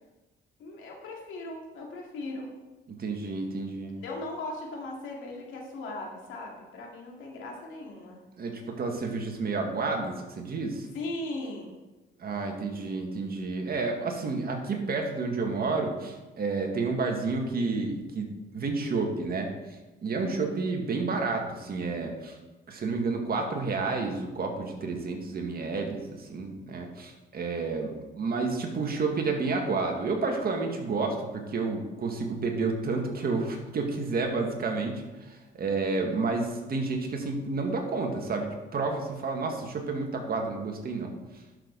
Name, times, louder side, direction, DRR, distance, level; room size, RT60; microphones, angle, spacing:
voice 1, 0.6-2.5 4.0-8.2 10.9-11.8 20.2-20.7, left 2 dB, 80° left, -1 dB, 2.4 m, -38 dB
voice 2, 2.9-4.0 8.4-10.9 12.2-18.3 18.5-22.4 22.7-41.1, right 3 dB, 50° right, 2 dB, 1.9 m, -30 dB
11.5 x 6.4 x 4.0 m, 1.1 s
cardioid pair, 90°, 20 cm